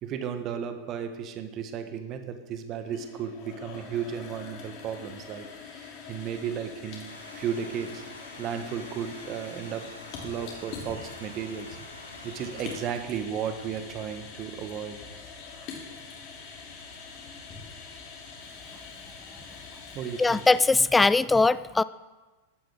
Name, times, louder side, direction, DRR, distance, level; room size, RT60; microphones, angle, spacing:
voice 1, 0.0-5.5 5.7-8.0 8.4-9.9 10.2-11.8 12.2-15.0 19.9-20.4, right 8 dB, 35° right, 8 dB, 1.3 m, -34 dB
sound 1, 2.7-21.0, left 5 dB, 40° left, 3.0 m, -44 dB
sound 2, 7.0-12.9, left 1 dB, 85° left, 1.9 m, -48 dB
voice 2, 20.2-21.8, left 3 dB, 10° left, 18 dB, 0.3 m, -21 dB
15.0 x 11.5 x 3.7 m, 1.2 s
figure-of-eight pair, 90°, 0 cm